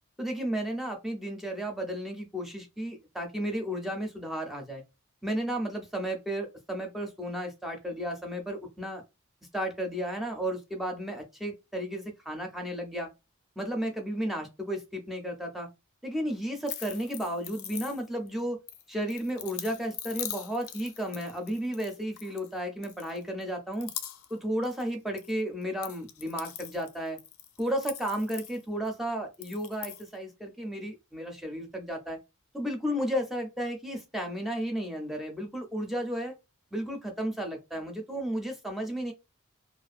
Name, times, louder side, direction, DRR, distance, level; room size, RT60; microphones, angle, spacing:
voice 1, 0.2-4.8 5.2-9.0 9.5-13.1 13.6-15.7 16.0-18.6 18.9-23.9 24.3-27.2 27.6-32.2 32.5-36.3 36.7-39.1, equal, ahead, 0.4 m, -33 dB
sound 1, 16.7-18.3 18.7-22.5 22.8-23.4 23.7-24.4 24.6-25.3 25.6-28.9 29.3-30.1, left 10 dB, 80° left, 0.4 m, -42 dB
2.5 x 2.2 x 2.4 m
head